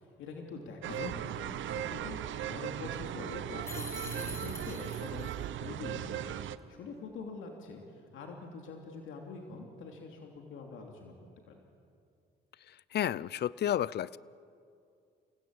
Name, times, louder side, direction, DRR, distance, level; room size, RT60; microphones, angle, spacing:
voice 1, 0.2-6.4 6.7-11.1 11.5-11.6, left 4 dB, 80° left, 2 dB, 2.9 m, -45 dB
sound 1, 0.8-6.6, right 11 dB, 75° right, 0.9 m, -38 dB
sound 2, 3.6-5.3, left 2 dB, 15° left, 3.9 m, -44 dB
voice 2, 12.9-14.2, left 11 dB, 55° left, 21 dB, 0.6 m, -31 dB
28.5 x 17.5 x 8.9 m, 2.4 s
cardioid pair, 90°, 20 cm